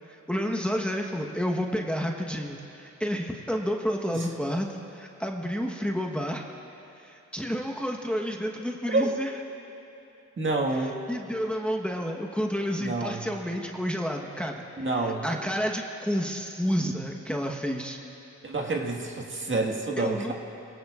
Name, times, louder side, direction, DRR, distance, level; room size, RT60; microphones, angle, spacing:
voice 1, 0.1-6.5 7.0-9.3 10.8-14.7 14.9-18.0 20.0-20.3, equal, 5° left, 1 dB, 1.1 m, -30 dB
voice 2, 10.4-10.9 12.8-13.3 14.8-15.2 18.4-20.3, right 2 dB, 40° right, 1 dB, 1.7 m, -28 dB
22.5 x 16.5 x 2.5 m, 2.9 s
cardioid pair, 65°, 30 cm